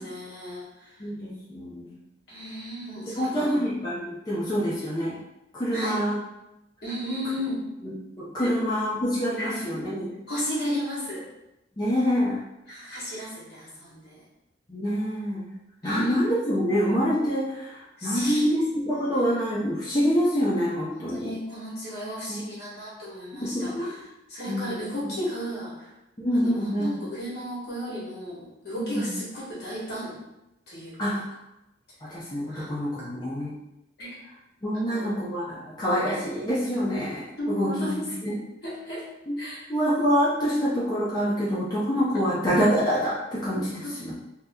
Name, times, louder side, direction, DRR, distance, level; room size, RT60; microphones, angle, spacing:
voice 1, 0.0-1.0 2.3-3.6 5.7-6.0 6.8-7.6 8.4-8.5 9.4-9.6 10.3-11.2 12.7-14.2 15.8-16.2 18.0-18.4 19.0-19.3 20.9-24.0 24.3-25.9 26.3-30.2 30.7-31.2 32.5-32.7 33.0-33.1 34.0-34.1 34.7-35.0 37.4-39.0 39.4-39.7 43.8-43.9, equal, 60° left, -6 dB, 1.2 m, -34 dB
voice 2, 1.0-2.0 3.2-5.2 5.5-6.2 7.8-10.1 11.8-12.4 14.7-15.5 15.8-21.3 22.3-22.4 23.3-23.9 24.5-24.7 26.2-27.1 28.8-29.1 31.0-31.2 32.0-33.5 34.6-38.3 39.3-39.4 39.7-44.1, equal, 25° left, -9 dB, 0.6 m, -26 dB
2.8 x 2.0 x 3.5 m, 0.91 s
head